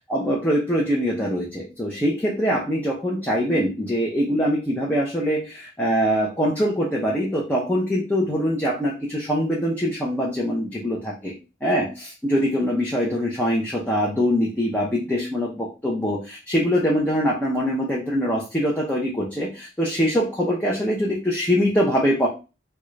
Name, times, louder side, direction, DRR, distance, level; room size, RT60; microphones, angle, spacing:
voice 1, 0.0-11.3 11.6-22.3, equal, 10° left, -4 dB, 0.6 m, -23 dB
3.7 x 2.3 x 3.1 m, 0.30 s
head